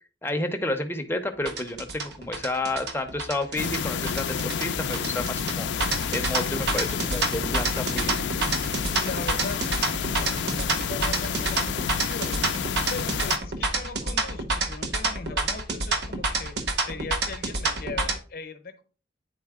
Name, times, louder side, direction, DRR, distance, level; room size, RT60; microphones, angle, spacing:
voice 1, 0.2-8.2, left 2 dB, 15° left, 5 dB, 0.7 m, -31 dB
Motorcycle / Accelerating revving vroom, 1.2-15.0, left 1 dB, 85° right, 1.7 m, -49 dB
sound 1, 1.5-18.2, right 3 dB, 65° right, 0.8 m, -28 dB
sound 2, 3.6-13.4, left 7 dB, 85° left, 0.4 m, -30 dB
voice 2, 8.9-12.5 12.9-18.8, left 3 dB, 55° left, 9 dB, 0.8 m, -39 dB
9.0 x 4.1 x 3.6 m, 0.37 s
head